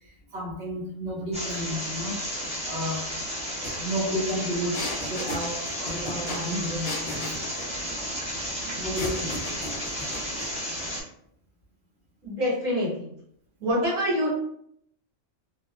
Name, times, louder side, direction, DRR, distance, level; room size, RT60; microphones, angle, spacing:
voice 1, 0.3-2.2 2.6-3.1 3.6-7.5 8.8-9.4, equal, 60° right, -2 dB, 0.9 m, -32 dB
sound 1, 1.3-11.0, equal, 10° right, 0.3 m, -33 dB
sound 2, 3.6-3.7 4.0-7.7 8.9-10.5, left 2 dB, 60° left, 0.5 m, -36 dB
voice 2, 12.2-13.1 13.6-14.3, equal, 80° right, -6 dB, 1.5 m, -26 dB
2.8 x 2.2 x 2.3 m, 0.71 s
omnidirectional pair, 1.4 m